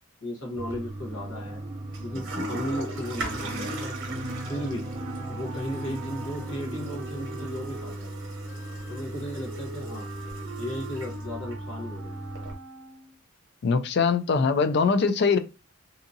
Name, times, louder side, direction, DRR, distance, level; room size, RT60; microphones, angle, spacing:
voice 1, 0.2-1.6 2.0-4.0 4.5-4.9 5.3-8.2 8.9-10.1 10.6-12.2, equal, 75° left, 1.0 m, -35 dB
Toilet flush, 0.6-12.5, right 1 dB, 60° right, 0.9 m, -36 dB
sound 1, 1.1-7.9, right 1 dB, 30° right, 0.5 m, -40 dB
Wind instrument woodwind instrument, 4.9-13.2, right 3 dB, 80° right, 0.6 m, -44 dB
voice 2, 13.6-15.4, left 5 dB, 50° left, 0.3 m, -22 dB
2.7 x 2.5 x 2.5 m
head